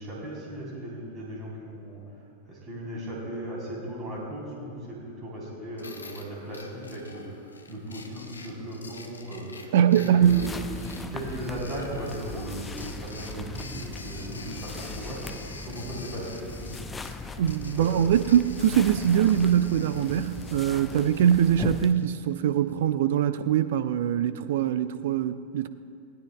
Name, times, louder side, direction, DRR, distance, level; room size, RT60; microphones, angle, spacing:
voice 1, 0.0-2.0 2.5-10.6 11.1-15.2 15.6-16.9 17.8-17.9, right 1 dB, 25° right, -4 dB, 3.8 m, -37 dB
sound 1, 5.8-22.8, left 3 dB, 75° left, 1.1 m, -47 dB
voice 2, 9.7-10.5 17.4-25.7, right 9 dB, 55° right, 13 dB, 0.4 m, -23 dB
sound 2, 10.2-21.9, left 3 dB, 15° left, 0.7 m, -39 dB
21.0 x 16.5 x 2.3 m, 2.4 s
figure-of-eight pair, 90°, 0 cm